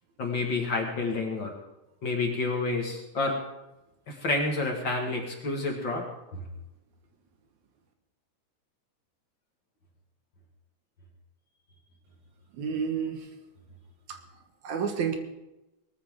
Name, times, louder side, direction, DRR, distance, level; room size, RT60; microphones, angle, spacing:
voice 1, 0.2-1.5 2.0-3.4 4.1-6.0, left 3 dB, 45° left, 1 dB, 2.1 m, -29 dB
voice 2, 12.5-13.3 14.1-14.2 14.6-15.2, right 6 dB, 75° right, 5 dB, 2.7 m, -30 dB
20.0 x 14.0 x 3.7 m, 0.95 s
omnidirectional pair, 3.4 m